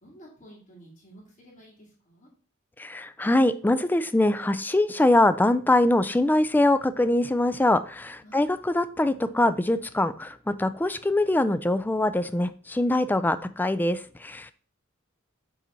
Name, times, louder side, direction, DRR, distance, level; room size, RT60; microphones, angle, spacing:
voice 1, 0.0-2.3 8.2-8.4, equal, 40° left, -6 dB, 2.5 m, -51 dB
voice 2, 2.8-14.5, left 1 dB, 10° left, 13 dB, 0.3 m, -23 dB
7.3 x 4.0 x 4.3 m, 0.43 s
head